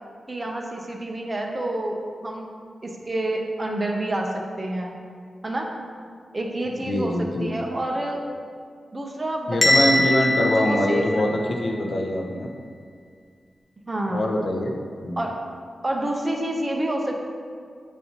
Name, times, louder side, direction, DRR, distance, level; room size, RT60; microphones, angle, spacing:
voice 1, 0.3-2.5 2.8-4.9 5.4-5.7 6.3-8.2 8.9-11.2 13.9-14.4 15.2-15.4 15.8-17.1, right 1 dB, 25° right, 0 dB, 0.7 m, -28 dB
voice 2, 6.8-7.5 9.5-11.3 11.6-12.5 14.1-14.7 15.0-15.3, left 1 dB, 55° left, 1 dB, 0.7 m, -24 dB
Bell, 9.6-11.7, left 1 dB, 15° left, 0.8 m, -22 dB
8.6 x 4.1 x 2.9 m, 2.1 s
wide cardioid pair, 130°, 0 cm